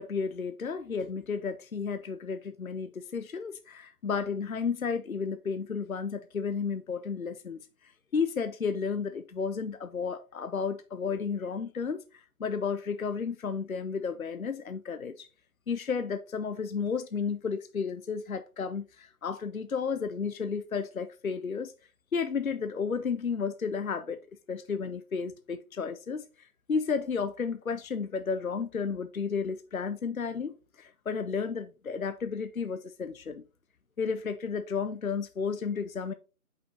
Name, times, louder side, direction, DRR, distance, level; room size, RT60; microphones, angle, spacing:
voice 1, 0.0-7.6 8.1-12.0 12.4-15.3 15.7-21.7 22.1-24.2 24.5-26.3 26.7-33.4 34.0-36.1, left 5 dB, 65° left, 0.6 m, -32 dB
5.5 x 4.9 x 3.9 m
figure-of-eight pair, 165°, 45 cm